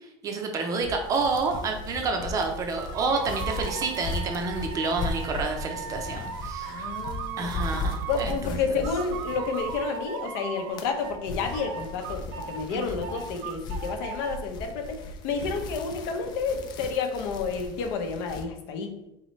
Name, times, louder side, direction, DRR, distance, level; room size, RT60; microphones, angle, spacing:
voice 1, 0.2-6.7 7.4-8.7 12.7-13.0, right 3 dB, 25° right, 3 dB, 0.6 m, -29 dB
sound 1, 0.8-10.2 10.5-18.4, left 2 dB, 35° left, 0.4 m, -37 dB
sound 2, 2.7-8.4 8.8-11.2 11.5-14.4, right 7 dB, 85° right, 0.6 m, -38 dB
voice 2, 6.6-7.6 8.1-15.0 15.2-19.0, left 5 dB, 60° left, 5 dB, 0.8 m, -30 dB
4.3 x 3.8 x 3.1 m, 0.85 s
cardioid pair, 170°, 14 cm